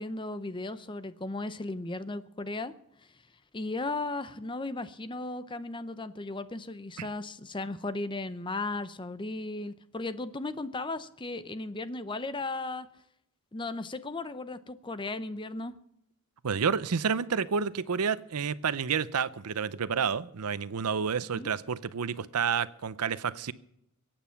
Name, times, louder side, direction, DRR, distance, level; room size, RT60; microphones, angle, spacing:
voice 1, 0.0-2.7 3.5-12.9 13.5-15.7 21.3-21.5, left 2 dB, 20° left, 13 dB, 0.7 m, -36 dB
voice 2, 16.4-23.5, right 6 dB, 90° right, 17 dB, 0.6 m, -30 dB
22.5 x 8.9 x 5.8 m, 0.79 s
head